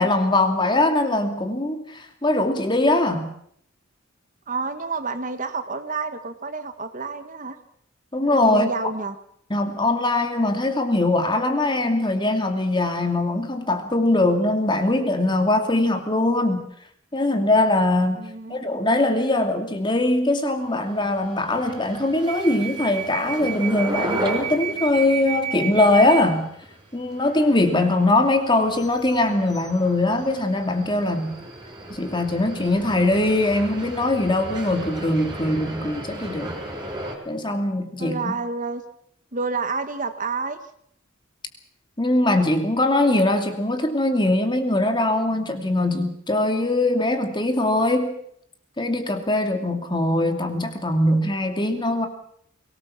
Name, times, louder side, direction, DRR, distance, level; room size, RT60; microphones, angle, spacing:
voice 1, 0.0-3.3 8.1-8.7 9.5-16.6 17.1-18.2 18.5-26.5 26.9-31.4 31.9-36.5 37.3-38.4 42.0-48.1 48.8-52.1, left 2 dB, 25° left, 5 dB, 2.6 m, -21 dB
voice 2, 4.5-7.6 8.4-9.2 18.2-18.7 38.0-38.8 39.3-40.6, right 4 dB, 40° right, 9 dB, 1.5 m, -29 dB
sound 1, 20.9-37.2, right 3 dB, 20° right, 5.8 m, -34 dB
23.0 x 18.5 x 7.3 m, 0.67 s
head